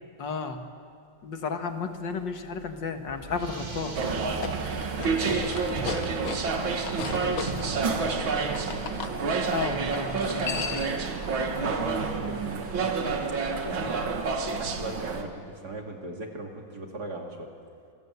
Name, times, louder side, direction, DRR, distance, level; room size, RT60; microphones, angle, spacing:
voice 1, 0.2-0.6 1.2-4.0 9.5-11.0, left 5 dB, 70° left, 6 dB, 2.3 m, -33 dB
sound 1, 2.2-12.9, right 3 dB, 25° right, 2.0 m, -41 dB
sound 2, 3.9-15.2, right 4 dB, 90° right, 2.5 m, -29 dB
sound 3, 4.2-9.2 10.2-11.0, left 7 dB, 55° left, 1.4 m, -37 dB
voice 2, 5.7-8.6 11.6-13.1 13.6-14.2 14.6-17.5, right 2 dB, 55° right, 1 dB, 3.1 m, -38 dB
27.0 x 22.0 x 8.2 m, 2.4 s
omnidirectional pair, 2.1 m